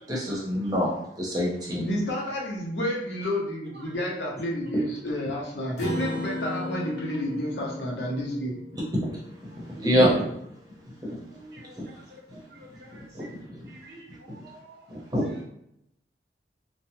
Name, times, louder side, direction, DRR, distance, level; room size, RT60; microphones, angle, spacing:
voice 1, 0.1-0.9 1.2-1.9 9.0-9.1 9.6-10.3 11.8-11.9 14.9-15.4, equal, 20° right, -4 dB, 0.8 m, -25 dB
voice 2, 1.8-8.5, equal, 75° left, -3 dB, 0.8 m, -30 dB
Acoustic guitar, 5.8-10.5, left 2 dB, 40° left, 1.0 m, -36 dB
voice 3, 11.3-11.6 13.7-14.0 14.4-14.6, right 1 dB, 65° right, -2 dB, 0.7 m, -46 dB
3.0 x 2.2 x 2.7 m, 0.77 s
head